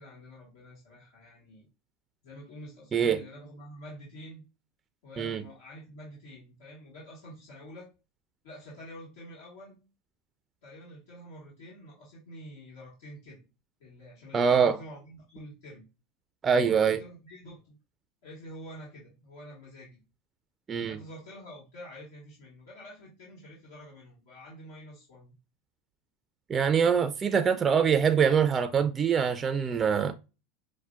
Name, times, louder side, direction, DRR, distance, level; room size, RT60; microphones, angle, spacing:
voice 1, 0.0-1.7 2.2-4.4 5.0-7.9 8.4-9.8 10.6-13.4 13.8-15.8 16.6-17.8 18.2-20.0 20.9-25.3 27.4-27.6, equal, 75° left, 1.5 m, -47 dB
voice 2, 14.3-14.8 16.4-17.0 20.7-21.0 26.5-30.1, right 7 dB, 30° right, 0.4 m, -24 dB
5.5 x 2.1 x 2.4 m
hypercardioid pair, 90°, 0 cm